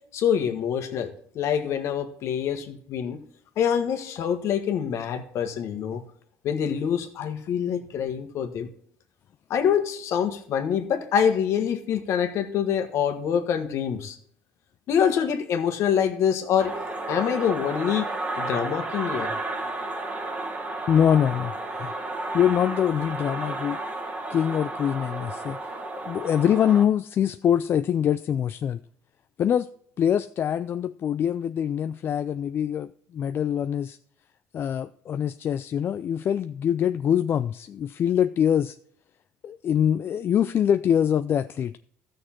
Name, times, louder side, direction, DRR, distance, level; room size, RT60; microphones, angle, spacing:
voice 1, 0.1-1.1 1.3-3.2 3.6-6.0 6.4-8.7 9.5-14.2 14.9-16.7 17.1-18.1 18.4-19.3, left 8 dB, 65° left, 1.5 m, -25 dB
sound 1, 16.6-26.8, right 2 dB, 25° right, 1.6 m, -32 dB
voice 2, 20.9-22.0 22.3-23.8 24.3-25.6 26.1-28.8 29.4-29.7 30.0-34.0 34.5-38.7 39.4-41.8, left 9 dB, 45° left, 0.4 m, -24 dB
14.0 x 6.6 x 4.4 m
cardioid pair, 105°, 5 cm